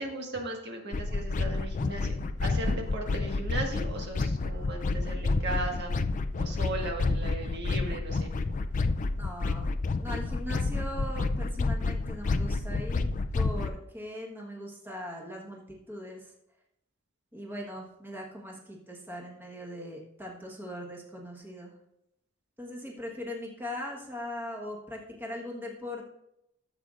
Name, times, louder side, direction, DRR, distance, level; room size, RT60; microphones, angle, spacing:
voice 1, 0.0-2.2 2.4-5.9 6.4-8.5, right 2 dB, 60° right, 1 dB, 1.6 m, -37 dB
sound 1, 0.9-13.7, left 3 dB, 40° left, 0.4 m, -29 dB
voice 2, 9.2-9.7 10.0-13.1 13.3-16.3 17.3-21.7 22.6-26.1, left 1 dB, 10° right, -2 dB, 1.3 m, -40 dB
14.5 x 7.6 x 2.5 m, 0.83 s
head